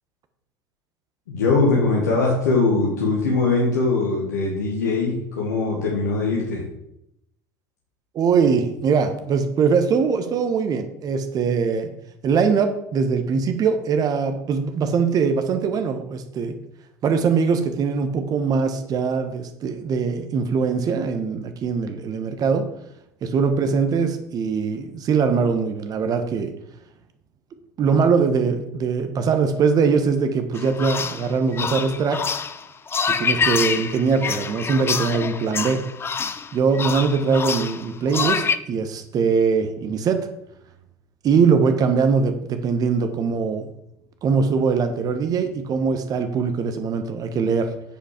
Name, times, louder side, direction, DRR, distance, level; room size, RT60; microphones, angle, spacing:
voice 1, 1.3-6.6, left 3 dB, 85° left, -4 dB, 1.9 m, -21 dB
voice 2, 8.1-11.9 12.2-16.6 17.0-22.7 23.2-26.5 27.8-32.3 33.1-35.8 36.5-40.2 41.2-43.7 44.2-47.7, right 5 dB, 45° right, 8 dB, 1.3 m, -22 dB
sound 1, 30.5-38.6, left 6 dB, 25° left, 0.6 m, -26 dB
9.2 x 5.1 x 5.1 m, 0.79 s
hypercardioid pair, 75°, 9 cm